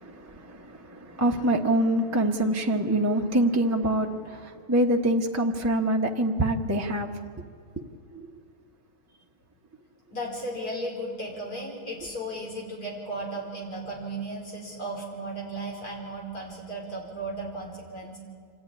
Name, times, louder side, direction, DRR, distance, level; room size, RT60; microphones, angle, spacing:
voice 1, 0.0-7.1 8.1-8.3, right 1 dB, 15° right, 1 dB, 0.8 m, -25 dB
voice 2, 10.1-18.2, right 1 dB, 70° left, -2 dB, 5.2 m, -35 dB
26.0 x 14.0 x 9.8 m, 2.3 s
omnidirectional pair, 1.7 m